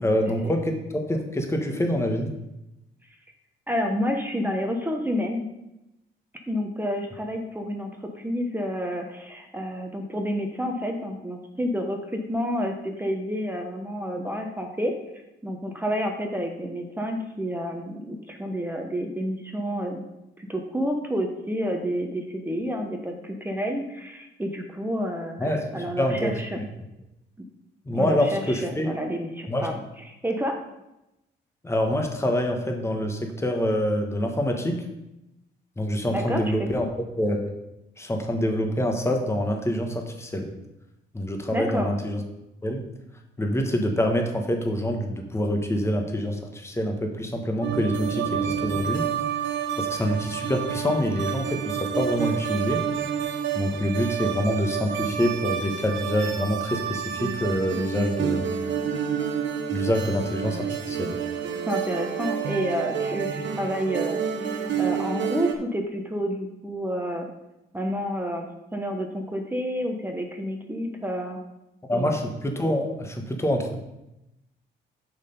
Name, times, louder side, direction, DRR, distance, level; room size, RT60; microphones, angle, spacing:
voice 1, 0.0-0.7 1.1-2.3 25.4-25.6 26.0-26.7 27.8-29.0 29.5-29.7 31.6-34.8 35.8-36.9 37.2-37.5 38.0-40.5 41.1-42.2 42.6-42.8 43.4-49.0 49.8-53.1 53.5-58.5 59.7-61.1 71.9-73.7, equal, 15° left, 3 dB, 1.2 m, -26 dB
voice 2, 3.7-5.5 6.5-14.9 15.4-20.1 20.4-26.6 27.9-29.8 30.2-30.6 36.1-36.4 41.5-41.9 61.5-67.3 67.7-68.5 68.7-71.4 71.9-72.1, equal, 10° right, 2 dB, 1.0 m, -29 dB
sound 1, 47.6-65.6, right 8 dB, 65° right, 0.9 m, -29 dB
6.4 x 5.6 x 5.4 m, 0.91 s
cardioid pair, 90°, 20 cm